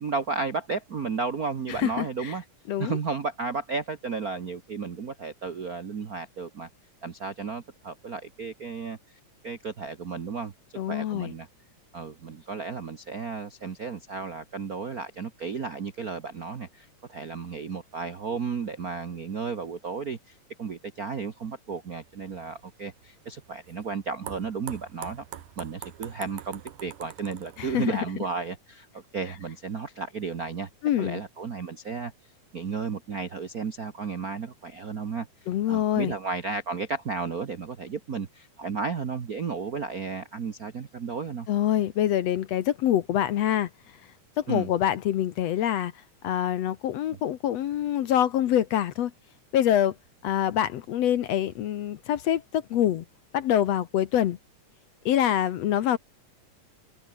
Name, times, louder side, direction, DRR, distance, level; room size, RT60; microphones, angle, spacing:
voice 1, 0.0-2.4 2.8-6.7 7.0-9.0 9.4-10.5 10.9-11.5 11.9-25.2 25.6-30.7 31.0-32.1 32.5-35.3 35.7-41.5 44.5-44.7, right 5 dB, 55° right, 0.9 m, -33 dB
voice 2, 1.7-2.4 2.7-3.0 10.8-11.3 27.6-28.0 30.8-31.2 35.5-36.1 41.5-43.7 44.4-45.9 46.2-49.1 49.5-50.0 50.2-53.1 53.3-54.4 55.1-56.0, left 11 dB, 65° left, 1.9 m, -25 dB
sound 1, 22.0-28.1, right 11 dB, 85° right, 3.1 m, -45 dB
open air
omnidirectional pair, 3.6 m